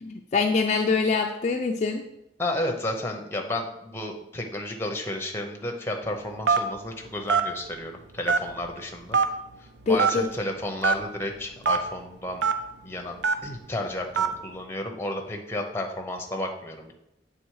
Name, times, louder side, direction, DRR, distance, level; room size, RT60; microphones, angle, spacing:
voice 1, 0.0-2.0 9.9-10.3, left 4 dB, 40° left, 3 dB, 0.4 m, -24 dB
voice 2, 2.4-9.2 9.9-12.5 12.8-16.9, left 1 dB, 15° left, 3 dB, 0.8 m, -32 dB
Telephone, 6.5-6.8 7.3-7.5 8.3-8.7 9.1-9.3 10.0-10.2 10.8-11.0 11.6-11.8 12.4-12.5 13.2-13.5 14.2-14.3, right 5 dB, 70° right, 0.5 m, -21 dB
8.0 x 3.5 x 4.7 m, 0.87 s
head